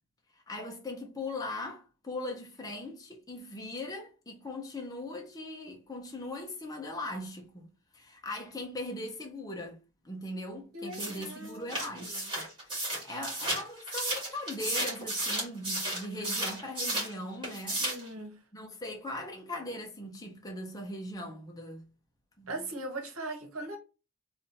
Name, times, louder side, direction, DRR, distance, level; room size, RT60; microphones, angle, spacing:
voice 1, 0.5-7.7 7.9-9.8 10.0-12.5 13.0-17.8 18.5-21.8 22.4-22.6, left 1 dB, 15° left, 0.8 m, -40 dB
voice 2, 10.7-11.7 12.0-12.3 17.8-18.4 22.5-23.8, right 2 dB, 65° right, 1.2 m, -40 dB
sound 1, 10.9-17.1 17.4-18.1, right 1 dB, 20° right, 2.2 m, -33 dB
3.5 x 2.6 x 4.1 m
head